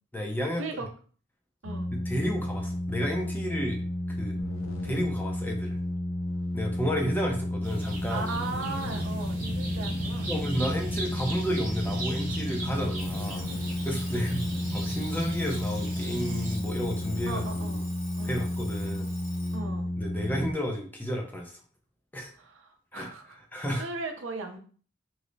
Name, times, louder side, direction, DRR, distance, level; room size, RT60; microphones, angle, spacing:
voice 1, 0.1-0.7 1.9-3.8 4.1-4.4 4.8-5.8 6.5-8.3 10.3-13.5 13.8-14.4 14.7-17.8 18.2-19.1 20.0-21.5 22.1-22.3 22.9-23.1 23.5-23.8, equal, 10° left, 1 dB, 0.5 m, -32 dB
sound 1, 1.6-20.5, left 1 dB, 80° left, 0.6 m, -32 dB
sound 2, 7.6-16.6, right 1 dB, 40° right, 1.1 m, -37 dB
voice 2, 8.1-10.4 14.1-14.4 17.2-18.4 18.9-19.0 19.5-19.9 22.4-24.6, right 3 dB, 70° right, 4 dB, 0.6 m, -38 dB
Alarm, 12.9-19.6, left 2 dB, 35° left, 0.9 m, -47 dB
3.1 x 2.0 x 3.8 m, 0.42 s
head